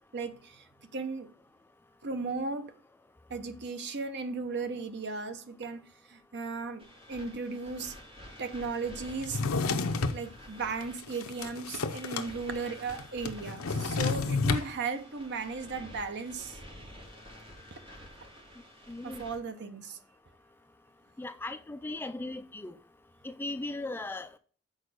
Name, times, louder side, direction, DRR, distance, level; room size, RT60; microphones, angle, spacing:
voice 1, 0.1-0.6 0.9-1.3 2.0-2.7 3.3-5.8 6.1-7.9 8.4-9.4 10.1-16.6 19.0-20.0, right 4 dB, 55° right, 0.9 m, -36 dB
sound 1, 6.8-19.4, equal, 25° right, 2.2 m, -50 dB
Drawer open or close, 9.2-10.2 10.8-12.3 12.6-12.7 12.9-14.7, left 4 dB, 70° left, 0.7 m, -30 dB
voice 2, 18.9-19.2 21.2-22.8 23.2-24.4, left 2 dB, 10° left, 0.3 m, -38 dB
6.5 x 4.5 x 6.4 m
head